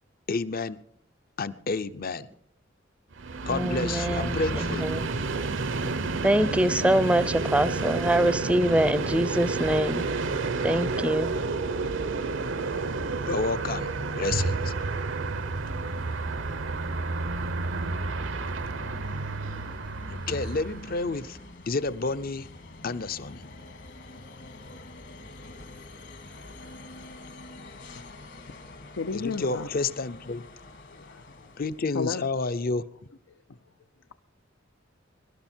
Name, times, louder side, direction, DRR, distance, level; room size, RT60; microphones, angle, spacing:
voice 1, 0.3-0.8 1.4-2.3 3.4-4.9 13.3-14.7 20.1-21.4 21.7-22.5 22.8-23.5 29.1-30.4 31.6-32.8, left 3 dB, 50° left, 0.7 m, -30 dB
Train, 3.1-21.3, right 3 dB, 75° right, 0.9 m, -30 dB
voice 2, 3.5-5.1 6.2-10.1 10.6-11.3, right 1 dB, 5° right, 0.5 m, -24 dB
sound 1, 13.1-32.1, left 2 dB, 65° left, 2.1 m, -47 dB
sound 2, 14.3-19.9, right 2 dB, 55° right, 0.6 m, -36 dB
voice 3, 28.9-29.7 31.0-31.5 31.9-32.3, left 4 dB, 90° left, 0.7 m, -32 dB
23.0 x 12.0 x 4.5 m
head